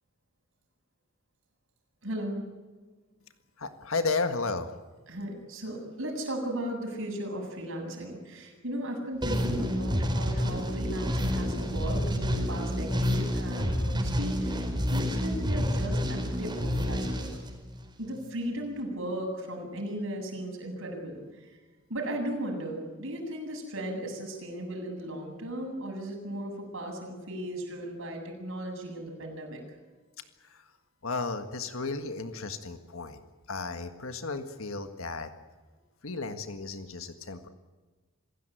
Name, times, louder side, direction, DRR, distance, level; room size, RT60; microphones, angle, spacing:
voice 1, 2.0-2.4 5.1-17.3 18.0-21.6 21.9-29.6, right 1 dB, 65° right, 1 dB, 7.8 m, -36 dB
voice 2, 3.6-4.7 30.4-30.7 31.0-33.2 33.5-35.3 36.0-37.5, left 3 dB, 70° left, 8 dB, 1.7 m, -33 dB
sound 1, 9.2-18.1, equal, 20° right, 4.7 m, -29 dB
27.0 x 16.5 x 9.2 m, 1.3 s
head